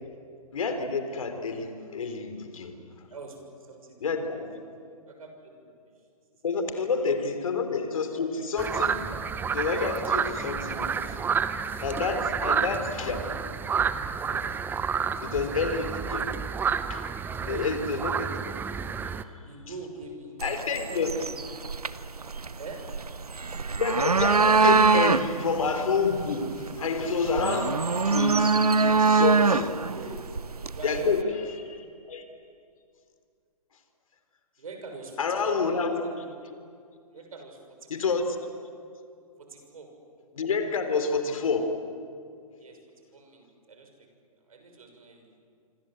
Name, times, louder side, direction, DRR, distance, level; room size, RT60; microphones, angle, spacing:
voice 1, 0.5-2.7 4.0-4.6 6.4-9.0 9.5-11.0 11.8-13.2 14.5-14.6 15.2-16.2 16.9-17.0 17.5-18.3 20.4-21.1 23.8-29.8 30.8-31.2 31.5-31.8 32.0-32.2 35.2-36.2 37.9-38.5 40.3-41.8, left 4 dB, 65° left, 7 dB, 3.6 m, -28 dB
voice 2, 3.1-6.1 6.4-6.6 7.0-7.1 11.9-12.7 15.1-15.6 17.3-18.2 19.4-20.4 20.9-21.7 22.6-22.8 29.8-30.4 30.6-31.5 34.6-36.3 37.1-38.2 39.4-39.9 42.6-42.8 43.1-44.1 44.4-45.3, right 3 dB, 70° right, 4 dB, 6.5 m, -45 dB
sound 1, 8.6-19.2, right 6 dB, 10° right, 0.8 m, -30 dB
sound 2, 20.4-31.2, right 4 dB, 90° right, 0.9 m, -24 dB
26.0 x 25.5 x 7.9 m, 2.3 s
figure-of-eight pair, 125°, 19 cm